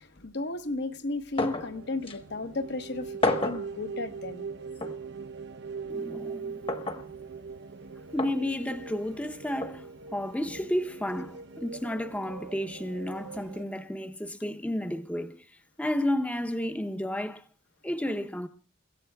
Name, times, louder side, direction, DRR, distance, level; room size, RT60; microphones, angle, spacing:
voice 1, 0.0-4.5, left 2 dB, 60° left, 1.0 m, -34 dB
sound 1, 1.4-1.7 2.1-2.2 3.2-3.7 4.8-5.0 6.7-7.0 8.2-8.4 9.6-9.8, left 2 dB, 25° left, 1.1 m, -29 dB
sound 2, 1.4-13.6, right 5 dB, 60° right, 0.7 m, -41 dB
voice 2, 5.9-6.7 8.1-17.4 17.8-18.5, left 1 dB, 5° left, 0.7 m, -32 dB
29.5 x 16.0 x 2.3 m
head